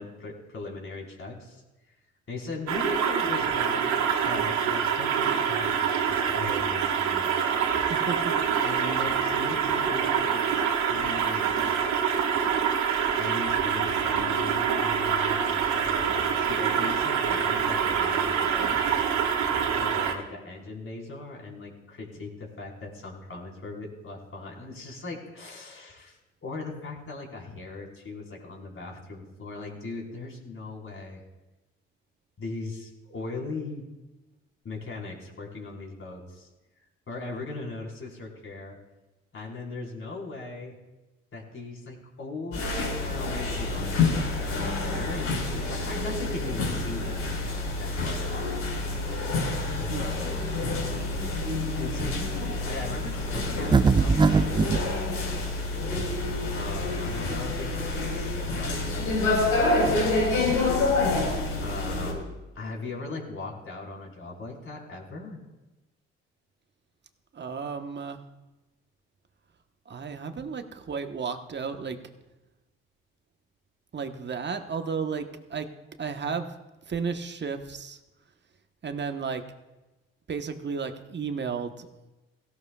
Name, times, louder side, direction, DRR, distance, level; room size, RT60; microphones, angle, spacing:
voice 1, 0.0-1.6 2.3-3.9 4.2-7.3 7.8-8.0 8.6-11.8 13.0-19.1 19.7-31.2 32.4-33.8 34.6-36.5 37.1-38.8 39.3-40.7 41.3-47.2 47.8-48.6 49.8-50.5 51.8-52.2 52.6-54.6 56.5-60.6 61.6-65.4, left 3 dB, 45° left, -1 dB, 4.6 m, -39 dB
sound 1, 2.7-20.1, right 7 dB, 75° right, 1.9 m, -26 dB
voice 2, 7.9-8.4 49.9-50.1 67.3-68.2 69.9-72.0 73.9-75.7 76.0-76.5 76.9-78.0 78.8-79.4 80.3-81.9, right 5 dB, 35° right, 7 dB, 1.3 m, -33 dB
sound 2, 42.5-62.1, left 2 dB, 70° left, 4.8 m, -28 dB
sound 3, 53.7-54.8, right 5 dB, 15° right, 0.4 m, -20 dB
17.5 x 15.5 x 2.4 m, 1.1 s
supercardioid pair, 60°, 29 cm